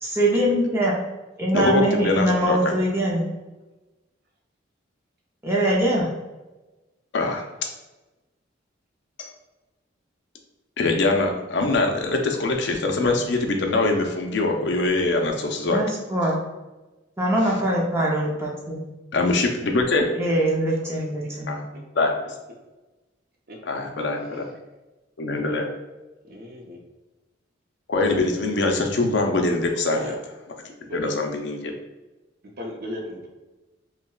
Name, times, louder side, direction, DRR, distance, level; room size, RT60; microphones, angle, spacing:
voice 1, 0.0-0.9 1.4-3.2 5.4-6.1 15.7-16.4 17.2-18.8 20.1-21.6, right 1 dB, 15° right, -4 dB, 0.6 m, -23 dB
voice 2, 1.5-2.6 7.1-7.5 9.2-9.3 10.8-15.8 19.1-20.1 21.5-21.6 22.0-22.1 23.7-24.5 25.2-25.7 27.9-30.2 30.9-31.7, left 2 dB, 60° left, 3 dB, 0.5 m, -23 dB
voice 3, 26.2-26.8 29.9-30.1 30.8-31.2 32.6-33.3, left 1 dB, 50° right, 0 dB, 0.7 m, -37 dB
5.6 x 2.2 x 2.3 m, 1.1 s
head